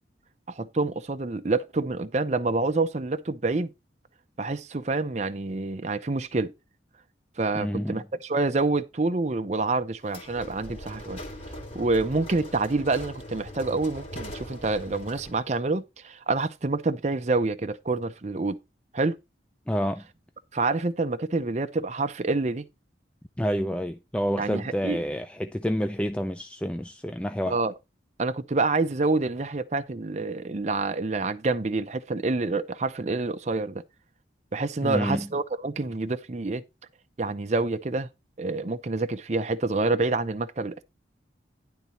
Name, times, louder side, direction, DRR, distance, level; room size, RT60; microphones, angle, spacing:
voice 1, 0.5-3.7 4.4-6.5 7.4-11.2 11.7-18.6 18.9-19.2 20.5-22.7 24.4-25.0 27.5-27.7 28.2-33.8 34.5-36.6 37.2-38.1 38.4-40.8, right 3 dB, 40° right, 0.6 m, -27 dB
voice 2, 7.5-8.0 19.7-20.0 23.4-27.6 34.8-35.3, equal, 5° left, 0.4 m, -28 dB
sound 1, 10.0-15.5, left 1 dB, 30° left, 2.7 m, -41 dB
10.5 x 4.0 x 5.6 m
head